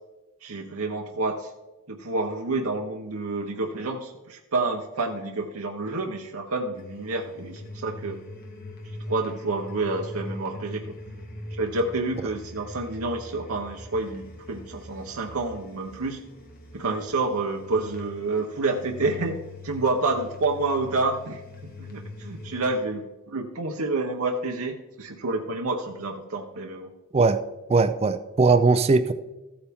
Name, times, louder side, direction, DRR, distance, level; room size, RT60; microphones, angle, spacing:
voice 1, 0.4-1.5 1.9-8.2 9.1-10.9 11.5-16.2 16.7-19.4 19.6-21.4 21.8-26.9, right 3 dB, 70° right, 3 dB, 0.8 m, -29 dB
sound 1, 6.8-22.8, left 2 dB, 40° left, 1.7 m, -42 dB
voice 2, 27.7-29.1, right 4 dB, 25° right, 11 dB, 0.4 m, -19 dB
14.0 x 8.9 x 3.5 m, 1.1 s
head